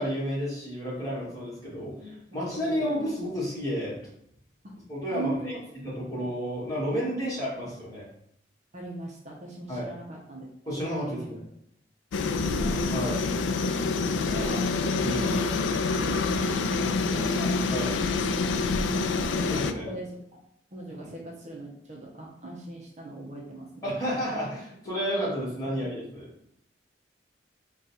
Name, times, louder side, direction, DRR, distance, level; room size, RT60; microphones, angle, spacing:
voice 1, 0.0-4.0 4.9-5.3 5.8-8.0 9.7-9.9 10.7-11.4 12.9-13.2 15.0-15.3 17.7-17.9 19.5-19.9 21.0-21.1 23.8-26.3, equal, 20° left, -8 dB, 1.6 m, -31 dB
voice 2, 1.8-2.1 2.4-2.9 4.6-4.8 5.1-5.6 6.1-6.3 7.2-7.6 8.7-10.5 11.0-11.4 12.2-13.5 13.9-17.6 18.8-20.4 20.7-23.9 25.6-25.7, right 1 dB, 40° right, -2 dB, 0.7 m, -40 dB
sound 1, 12.1-19.7, left 3 dB, 85° left, 0.3 m, -26 dB
3.8 x 2.4 x 4.0 m, 0.72 s
head